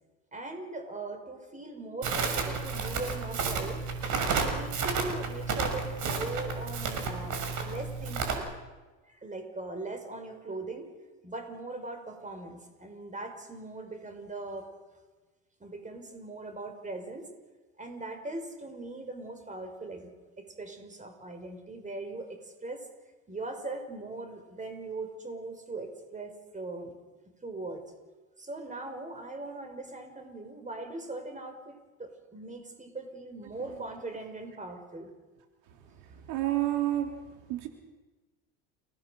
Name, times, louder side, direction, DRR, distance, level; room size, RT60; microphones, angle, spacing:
voice 1, 0.3-3.8 4.4-8.4 9.1-10.9 11.2-14.7 15.6-17.3 17.8-22.9 23.3-27.0 27.4-27.8 28.4-35.1, right 2 dB, 20° right, 6 dB, 5.9 m, -40 dB
Crackle, 2.0-8.3, right 4 dB, 50° right, 6.9 m, -31 dB
voice 2, 36.3-37.2 37.5-37.7, right 14 dB, 70° right, 3 dB, 3.7 m, -28 dB
29.5 x 19.5 x 6.7 m, 1.2 s
hypercardioid pair, 80°, 40 cm